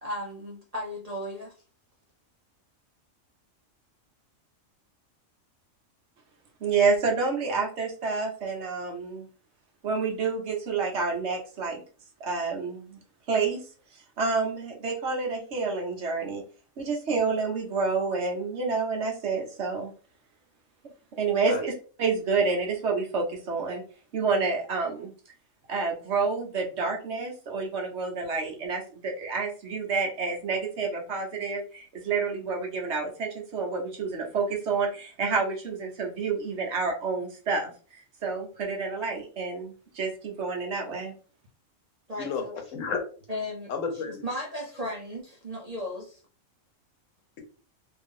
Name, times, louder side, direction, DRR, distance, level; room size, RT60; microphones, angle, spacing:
voice 1, 0.0-1.5 42.1-42.6 43.3-43.7 44.0-46.2, left 1 dB, 40° right, -1 dB, 0.6 m, -35 dB
voice 2, 6.6-9.3 9.8-11.8 12.2-13.0 13.3-13.6 14.2-16.4 16.8-19.9 21.2-21.7 22.0-23.8 24.1-25.1 25.7-37.7 38.2-41.1, right 4 dB, 60° right, 0 dB, 1.2 m, -28 dB
voice 3, 21.2-21.6 42.2-42.4 42.7-43.0 43.7-44.2, left 5 dB, 80° left, 5 dB, 1.1 m, -32 dB
2.9 x 2.6 x 3.7 m, 0.39 s
omnidirectional pair, 1.3 m